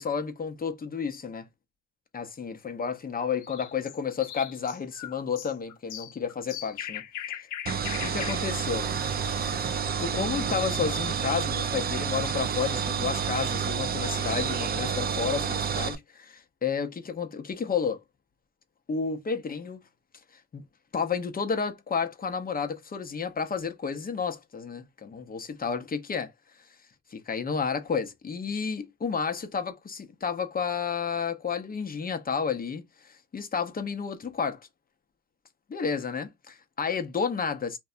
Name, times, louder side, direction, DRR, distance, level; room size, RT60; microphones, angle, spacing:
voice 1, 0.0-1.5 2.1-7.0 8.0-8.9 9.7-18.0 18.9-19.8 20.5-20.6 20.9-26.3 26.6-26.7 27.1-34.7 35.7-37.8, left 6 dB, 30° left, 0.6 m, -31 dB
sound 1, 3.4-10.0, left 11 dB, 80° left, 0.6 m, -40 dB
sound 2, 7.7-16.0, right 6 dB, 30° right, 0.4 m, -29 dB
2.6 x 2.1 x 2.4 m
cardioid pair, 90°, 30 cm